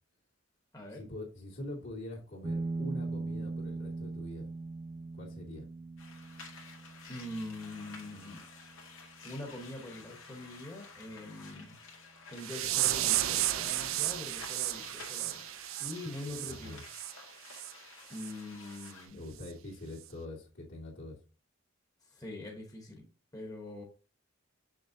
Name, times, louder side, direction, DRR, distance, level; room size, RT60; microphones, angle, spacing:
voice 1, 0.9-4.5 5.2-5.7 16.3-16.8 19.1-21.2, left 1 dB, 65° left, 2.5 m, -44 dB
sound 1, 2.4-11.5, right 3 dB, 25° right, 0.4 m, -41 dB
sound 2, 6.0-19.1, left 4 dB, 85° left, 2.1 m, -52 dB
voice 2, 7.1-8.4 9.2-11.8 12.3-15.5 15.8-16.8 18.1-19.2 22.0-23.1 23.3-23.8, left 1 dB, 20° left, 1.2 m, -43 dB
sound 3, 12.4-17.1 17.5-17.7 18.2-18.3 18.8-18.9 19.4-19.5, right 13 dB, 85° right, 0.5 m, -33 dB
6.5 x 6.3 x 2.8 m
head